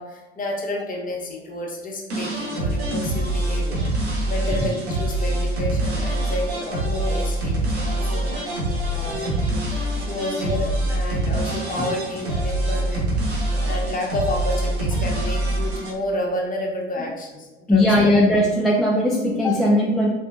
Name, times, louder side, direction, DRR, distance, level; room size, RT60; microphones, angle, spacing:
voice 1, 0.0-13.4 13.6-18.1 19.4-19.6, left 1 dB, 25° left, -1 dB, 1.2 m, -31 dB
sound 1, 2.1-15.9, right 1 dB, 75° right, 1.3 m, -25 dB
voice 2, 17.7-20.1, left 1 dB, ahead, -4 dB, 0.5 m, -18 dB
4.2 x 3.4 x 2.6 m, 1.2 s
figure-of-eight pair, 70°, 33 cm